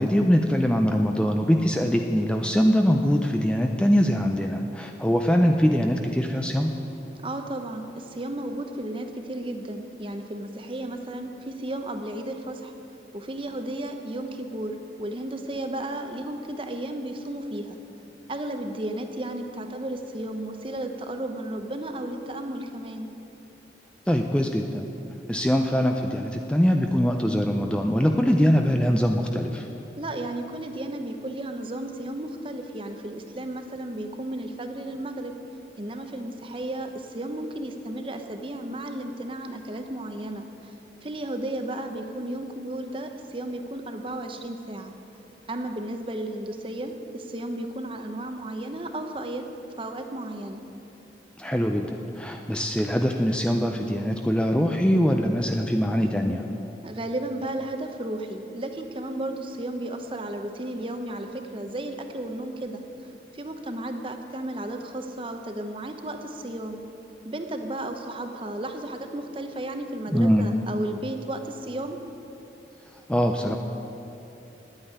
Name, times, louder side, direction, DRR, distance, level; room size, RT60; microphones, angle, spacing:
voice 1, 0.0-6.7 24.1-24.8 25.3-29.7 51.4-56.5 70.1-70.5 73.1-73.6, equal, 5° left, 3 dB, 0.4 m, -22 dB
voice 2, 7.2-12.7 13.1-17.8 18.3-23.1 30.0-35.3 35.8-40.7 41.0-44.9 45.5-49.5 49.8-50.6 56.8-62.8 63.3-66.8 67.2-72.0, right 1 dB, 30° right, 6 dB, 0.8 m, -34 dB
9.8 x 8.9 x 9.7 m, 3.0 s
head